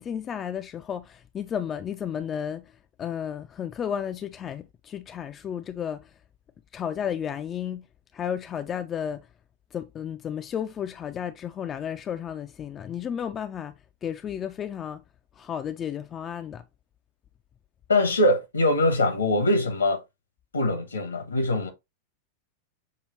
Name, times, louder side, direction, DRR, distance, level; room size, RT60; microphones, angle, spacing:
voice 1, 0.0-2.7 3.0-6.1 6.7-7.9 8.1-9.2 9.7-13.7 14.0-15.0 15.4-16.6, left 8 dB, 25° left, 0.4 m, -33 dB
voice 2, 17.9-20.0 20.5-21.7, left 1 dB, 75° left, 1.1 m, -23 dB
6.5 x 2.4 x 3.1 m
figure-of-eight pair, 90°, 0 cm